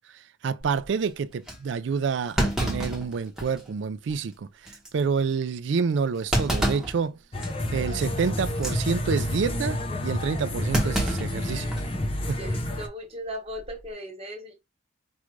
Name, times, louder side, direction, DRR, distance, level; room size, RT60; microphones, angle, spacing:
voice 1, 0.1-7.2 7.7-11.7 12.3-12.4, right 5 dB, 70° right, 0.4 m, -28 dB
Thump thud, 0.6-0.9 1.5-1.6 2.4-3.7 4.1-4.2 4.7-4.9 6.3-7.0 7.4-7.7 8.5-8.8 10.7-11.9 12.3-12.4 13.5-13.8, right 1 dB, 5° right, 0.9 m, -28 dB
sound 1, 7.3-12.9, left 1 dB, 30° left, 0.6 m, -29 dB
voice 2, 12.1-14.5, equal, 30° right, 1.3 m, -38 dB
4.6 x 2.5 x 3.1 m
head